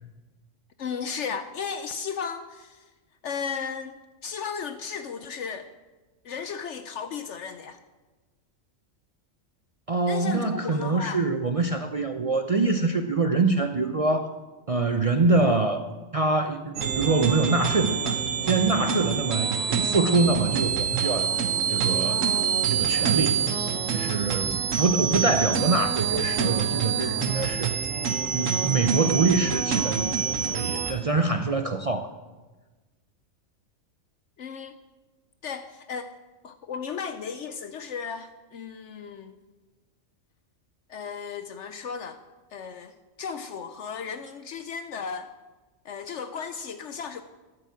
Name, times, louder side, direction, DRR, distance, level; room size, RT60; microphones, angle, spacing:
voice 1, 0.8-2.9 3.2-5.7 6.2-7.8 10.1-11.2 34.4-34.8 35.4-36.1 36.4-39.3 40.9-42.2 42.5-45.3 45.8-47.2, left 6 dB, 65° left, 0.9 m, -35 dB
voice 2, 9.9-14.4 14.7-18.2 18.4-21.4 21.7-23.5 23.9-27.7 28.3-32.1, right 3 dB, 50° right, 0.4 m, -25 dB
sound 1, 16.8-30.9, right 7 dB, 70° right, 1.3 m, -26 dB
13.0 x 6.8 x 8.2 m
omnidirectional pair, 1.4 m